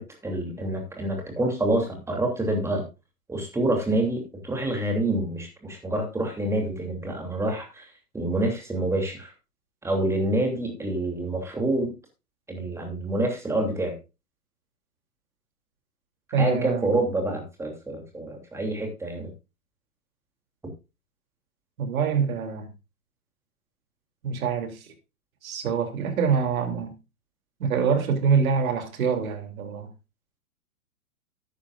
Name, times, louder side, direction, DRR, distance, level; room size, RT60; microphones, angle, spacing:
voice 1, 0.0-2.8 3.3-7.8 8.1-9.3 9.8-11.9 12.5-13.9 16.4-19.3, right 1 dB, 5° right, 2.9 m, -27 dB
voice 2, 16.3-17.0 21.8-22.7 24.2-24.9 25.4-26.9 27.6-29.9, right 6 dB, 65° right, 3.1 m, -25 dB
12.5 x 10.5 x 2.5 m
hypercardioid pair, 140°, 45 cm